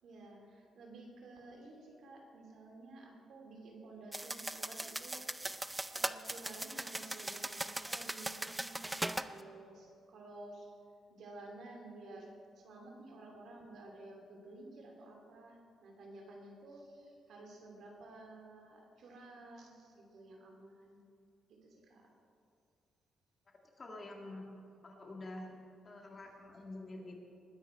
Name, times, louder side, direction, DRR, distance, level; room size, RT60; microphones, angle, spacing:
voice 1, 0.0-5.3 5.9-10.8 11.1-21.0 21.5-22.1, right 2 dB, 65° right, 1 dB, 2.9 m, -53 dB
sound 1, 4.1-9.3, right 1 dB, 10° right, 0.4 m, -39 dB
voice 2, 23.8-24.5 24.8-25.5 25.8-27.2, left 2 dB, 30° left, 0 dB, 2.0 m, -47 dB
20.0 x 9.9 x 4.5 m, 2.5 s
cardioid pair, 145°, 0 cm